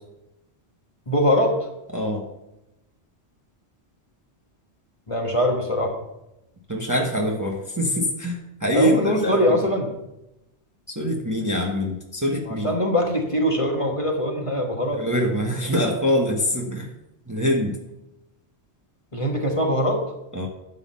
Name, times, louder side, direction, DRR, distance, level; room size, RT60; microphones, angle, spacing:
voice 1, 1.1-1.5 5.1-5.9 8.7-9.9 12.5-15.0 19.1-20.0, equal, 30° left, 1 dB, 1.3 m, -22 dB
voice 2, 1.9-2.2 6.7-9.6 10.9-12.7 14.9-16.9 17.3-17.8 20.3-20.5, equal, 15° right, 0 dB, 1.0 m, -24 dB
11.0 x 3.8 x 7.5 m, 0.91 s
omnidirectional pair, 1.2 m